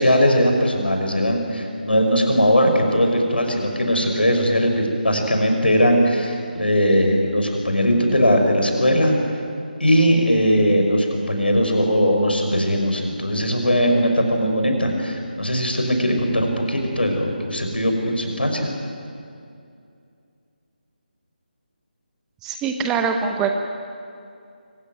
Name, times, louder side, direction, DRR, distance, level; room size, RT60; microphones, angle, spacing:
voice 1, 0.0-9.2 9.8-18.7, equal, 80° left, 3 dB, 5.6 m, -19 dB
voice 2, 22.4-23.5, right 6 dB, 10° right, 5 dB, 1.0 m, -23 dB
24.5 x 17.0 x 9.3 m, 2.5 s
figure-of-eight pair, 155°, 5 cm